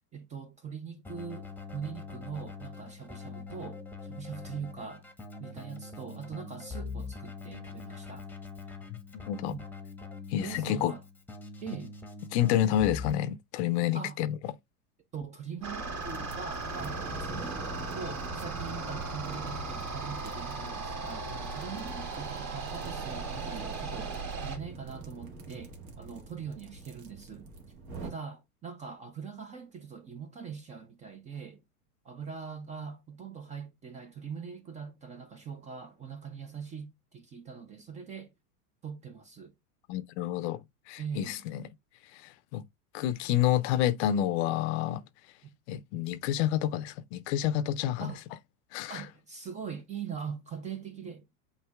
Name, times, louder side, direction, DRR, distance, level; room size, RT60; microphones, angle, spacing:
voice 1, 0.1-5.1 5.4-8.3 9.5-9.6 10.4-11.0 11.6-11.9 13.9-14.2 15.1-17.7 17.9-27.5 28.0-31.6 32.0-38.3 38.8-39.5 41.0-41.4 45.4-45.5 48.0-48.2 48.9-51.4, right 6 dB, 15° right, 0.4 m, -42 dB
Keyboard (musical), 1.0-13.1, left 4 dB, 5° left, 0.9 m, -43 dB
voice 2, 10.3-10.9 12.3-14.4 39.9-40.6 40.9-41.6 42.1-42.6 42.9-45.0 45.7-48.1 48.7-49.1, left 11 dB, 50° left, 0.5 m, -29 dB
sound 1, 15.6-24.6, right 3 dB, 35° right, 1.9 m, -37 dB
sound 2, 15.6-28.1, right 3 dB, 65° right, 1.7 m, -44 dB
7.9 x 2.7 x 2.2 m
hypercardioid pair, 105°, 46 cm